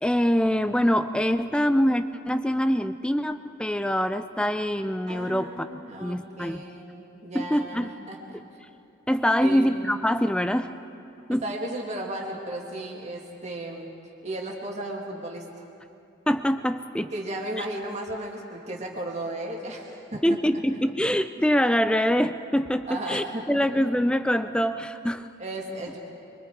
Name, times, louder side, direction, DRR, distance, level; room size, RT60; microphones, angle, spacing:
voice 1, 0.0-5.7 6.0-6.6 7.3-7.9 9.1-10.7 11.3-11.4 16.3-17.1 17.6-17.7 20.2-25.3, equal, 5° left, 11 dB, 0.5 m, -24 dB
voice 2, 5.1-8.4 9.4-9.7 11.4-13.9 14.2-15.6 17.1-20.4 22.9-23.7 25.4-26.0, right 1 dB, 35° right, -1 dB, 2.4 m, -35 dB
24.5 x 24.0 x 4.7 m, 2.7 s
head